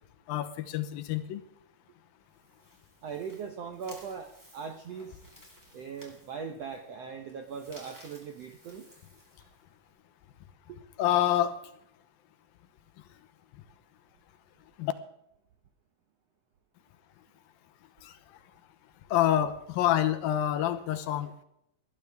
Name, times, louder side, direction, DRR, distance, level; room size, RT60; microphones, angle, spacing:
voice 1, 0.3-1.4 11.0-11.6 14.8-14.9 18.0-18.1 19.1-21.4, left 11 dB, 80° left, 10 dB, 2.7 m, -27 dB
sound 1, 2.2-9.9, equal, 5° right, 3.9 m, -57 dB
voice 2, 3.0-5.2 5.7-8.9 10.7-10.8, right 6 dB, 75° right, 5 dB, 1.5 m, -40 dB
19.5 x 12.5 x 3.5 m, 0.76 s
omnidirectional pair, 4.2 m